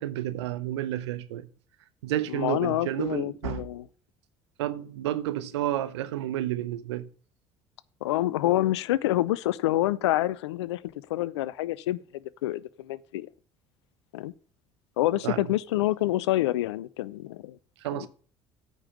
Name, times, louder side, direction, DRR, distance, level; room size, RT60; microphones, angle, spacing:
voice 1, 0.0-1.5 2.0-3.6 4.6-7.1 15.2-15.5 17.8-18.1, right 13 dB, 80° right, 0.8 m, -31 dB
voice 2, 2.3-3.9 8.0-10.8 11.1-13.3 14.1-14.3 15.0-17.6 17.9-18.1, left 15 dB, 80° left, 0.5 m, -27 dB
8.9 x 5.4 x 7.2 m
hypercardioid pair, 60°, 14 cm